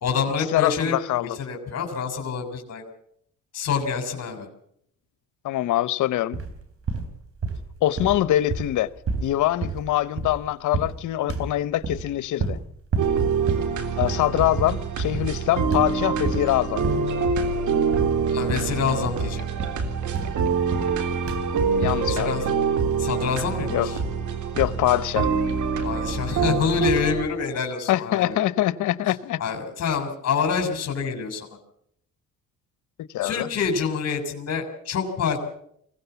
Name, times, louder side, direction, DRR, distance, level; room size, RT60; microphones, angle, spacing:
voice 1, 0.0-2.8 3.5-4.5 18.3-19.5 22.1-22.4 23.0-24.0 25.8-28.4 29.4-31.5 33.2-35.4, left 6 dB, 55° left, 3.8 m, -27 dB
voice 2, 0.5-1.4 5.4-6.4 7.8-8.9 9.2-12.6 14.0-16.8 21.8-22.4 23.7-23.9 24.5-25.3 27.9-29.4 33.0-33.5, left 14 dB, 80° left, 0.9 m, -24 dB
sound 1, 6.3-6.6 6.9-7.7 8.0-10.4 10.7-11.0 11.3-12.1 12.4-12.7 12.9-13.2 13.5-13.8 14.0-14.3 14.6-14.9 15.1-15.4 15.7-16.5 16.8-17.6 17.9-18.2 18.5-18.8 19.1-21.0 21.3-21.5 21.8-22.1, right 4 dB, 50° right, 3.7 m, -30 dB
sound 2, 13.0-27.2, right 5 dB, 75° right, 3.4 m, -25 dB
23.0 x 16.5 x 7.0 m
cardioid pair, 90°, 30 cm